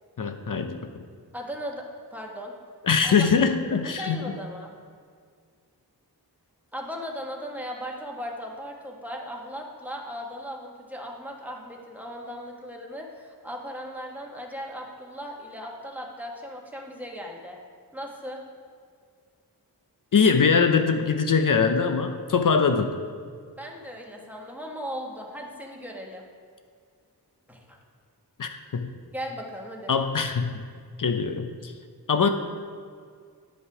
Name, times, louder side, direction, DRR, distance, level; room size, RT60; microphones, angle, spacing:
voice 1, 0.2-0.8 2.8-4.2 20.1-22.9 28.4-28.9 29.9-30.5 31.0-31.7 32.1-32.3, left 5 dB, 55° left, 7 dB, 0.6 m, -22 dB
voice 2, 1.3-1.8 2.1-2.5 3.0-3.1 3.7-4.7 6.7-17.6 17.9-18.4 23.6-26.2 27.5-27.8 29.1-29.9, equal, 5° right, -1 dB, 1.3 m, -37 dB
10.0 x 5.4 x 4.8 m, 2.1 s
wide cardioid pair, 70°, 40 cm